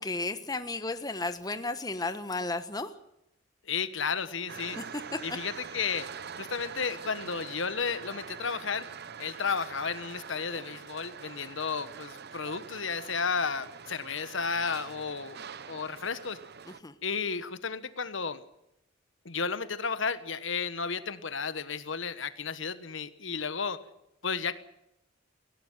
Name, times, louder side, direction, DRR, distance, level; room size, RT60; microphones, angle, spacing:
voice 1, 0.0-2.9 4.8-5.2 16.7-16.9, left 2 dB, 20° left, 10 dB, 1.1 m, -34 dB
voice 2, 3.7-4.8 5.2-6.1 6.4-8.9 9.2-15.4 15.7-16.4 17.0-18.4 19.2-23.8 24.2-24.6, left 5 dB, 70° left, 13 dB, 1.3 m, -33 dB
sound 1, 4.5-16.8, right 6 dB, 55° right, 0.9 m, -44 dB
18.5 x 17.0 x 9.3 m, 0.83 s
head